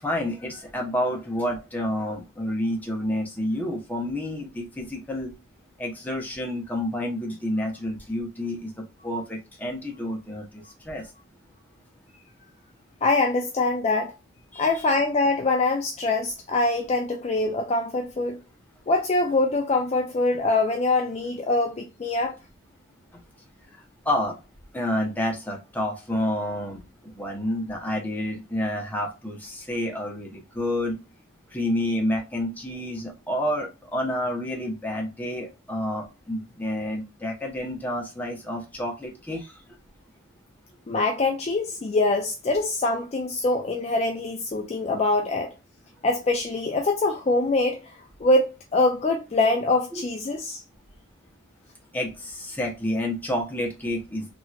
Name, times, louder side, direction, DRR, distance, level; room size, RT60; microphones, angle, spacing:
voice 1, 0.0-5.3 5.8-11.1 14.5-14.8 24.0-24.4 24.7-31.0 31.5-39.6 49.9-50.0 51.9-54.3, left 1 dB, 10° left, 0.8 m, -29 dB
voice 2, 13.0-14.1 14.6-18.4 18.9-22.4 40.9-45.5 46.0-50.6, left 2 dB, 30° left, 0.4 m, -24 dB
3.0 x 2.9 x 2.3 m
head